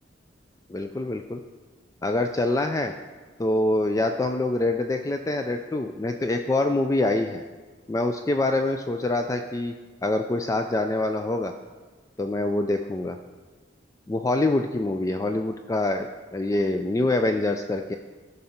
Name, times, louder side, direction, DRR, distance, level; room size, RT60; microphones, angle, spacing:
voice 1, 0.7-1.4 2.0-2.9 3.4-7.4 7.9-9.7 10.0-11.5 12.2-13.2 14.1-17.9, left 2 dB, 15° left, 6 dB, 0.3 m, -25 dB
13.0 x 5.4 x 4.3 m, 1.4 s
head